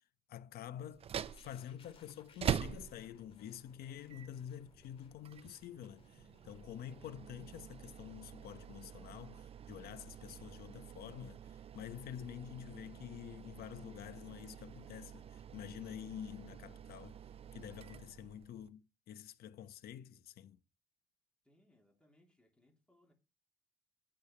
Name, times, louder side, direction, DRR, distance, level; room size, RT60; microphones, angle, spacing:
voice 1, 0.3-1.1 1.4-11.4 11.7-17.2 17.5-20.6, left 10 dB, 65° left, 0.8 m, -48 dB
sound 1, 0.9-18.7, right 9 dB, 35° right, 0.4 m, -46 dB
sound 2, 1.2-11.1 11.4-11.6, left 4 dB, 35° left, 2.2 m, -67 dB
voice 2, 21.4-23.1, left 1 dB, 5° left, 2.8 m, -70 dB
8.4 x 4.8 x 4.9 m
cardioid pair, 110°, 17 cm